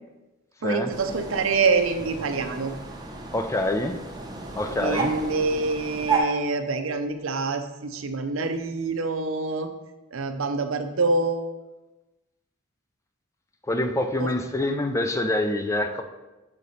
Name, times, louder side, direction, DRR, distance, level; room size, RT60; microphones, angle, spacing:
voice 1, 0.6-2.7 4.8-9.7 10.1-11.5 14.2-14.3, right 3 dB, 70° right, 7 dB, 0.6 m, -26 dB
sound 1, 0.9-6.2, right 4 dB, 20° right, 0.9 m, -33 dB
voice 2, 3.3-4.0 4.5-5.1 13.7-16.0, left 1 dB, 15° left, 6 dB, 0.4 m, -25 dB
6.6 x 5.1 x 4.2 m, 1.1 s
head